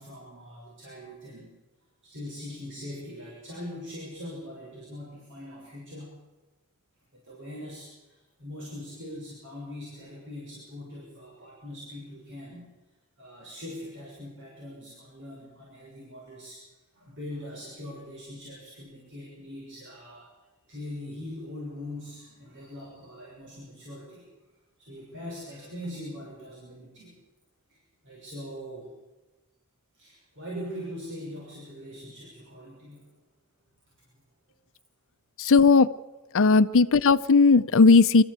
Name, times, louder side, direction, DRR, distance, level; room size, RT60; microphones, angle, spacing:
voice 1, 0.0-1.5 2.1-6.2 7.2-12.7 13.2-16.6 16.9-20.3 20.7-24.2 24.8-27.1 27.7-27.8 28.0-28.9 29.9-33.1 36.3-36.4, left 1 dB, 60° right, -4 dB, 6.1 m, -41 dB
voice 2, 35.4-35.9 36.3-38.2, left 4 dB, 60° left, 10 dB, 0.7 m, -17 dB
24.5 x 14.5 x 8.2 m, 1.1 s
head